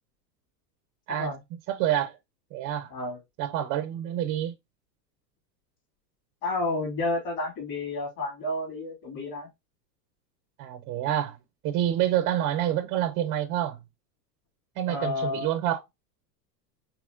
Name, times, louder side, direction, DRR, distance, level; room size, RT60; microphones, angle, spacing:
voice 1, 1.7-2.2 2.5-2.9 3.4-4.5 10.6-11.4 11.6-13.8 14.8-15.8, right 11 dB, 25° right, 0.3 m, -27 dB
voice 2, 2.9-3.2 6.4-9.5 14.9-15.5, left 2 dB, 45° left, 2.9 m, -31 dB
4.8 x 3.0 x 2.4 m
hypercardioid pair, 115°, 50 cm